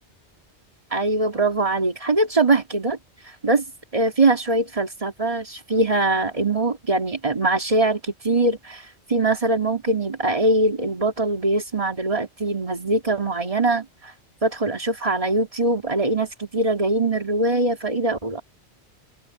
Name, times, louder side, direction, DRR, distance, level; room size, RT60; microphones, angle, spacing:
voice 1, 0.9-3.0 3.2-3.6 3.9-14.1 14.4-18.4, right 2 dB, 30° right, 2.4 m, -22 dB
omnidirectional pair, 1.1 m